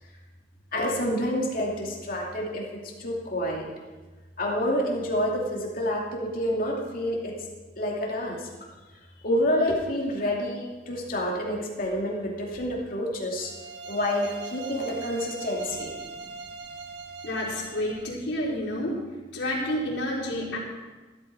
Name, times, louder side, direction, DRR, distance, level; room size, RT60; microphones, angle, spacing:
voice 1, 0.7-3.7 4.4-7.3 7.8-8.5 9.2-13.5 13.9-16.0, left 1 dB, 50° left, -2 dB, 2.6 m, -28 dB
sound 1, 13.4-18.2, right 4 dB, 80° right, 1.2 m, -40 dB
voice 2, 17.2-19.0 19.3-20.6, left 1 dB, 75° left, -5 dB, 4.7 m, -29 dB
15.5 x 13.5 x 4.7 m, 1.3 s
head